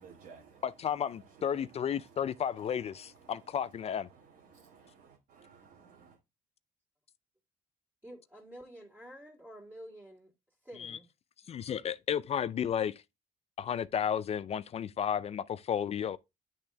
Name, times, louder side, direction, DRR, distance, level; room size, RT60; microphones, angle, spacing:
voice 1, 0.0-6.2, right 6 dB, 70° right, 1.9 m, -57 dB
voice 2, 0.6-4.1 10.8-10.9 11.5-12.9 13.6-16.2, left 8 dB, 40° left, 0.4 m, -33 dB
voice 3, 8.0-10.3 10.6-11.1, equal, 10° right, 2.5 m, -49 dB
10.0 x 3.5 x 3.3 m
cardioid pair, 110°, 17 cm